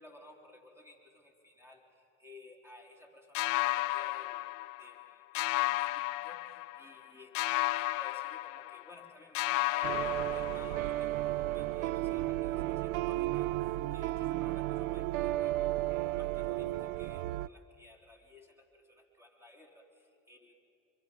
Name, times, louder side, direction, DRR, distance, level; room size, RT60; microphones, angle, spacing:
voice 1, 0.0-20.5, left 1 dB, 5° right, 1 dB, 3.5 m, -56 dB
sound 1, 3.3-5.1 5.3-7.0 7.3-9.1 9.3-11.0, left 20 dB, 75° left, 0.5 m, -33 dB
sound 2, 9.8-17.5, right 16 dB, 85° right, 0.5 m, -33 dB
26.0 x 23.0 x 5.3 m, 2.7 s
supercardioid pair, 105°, 39 cm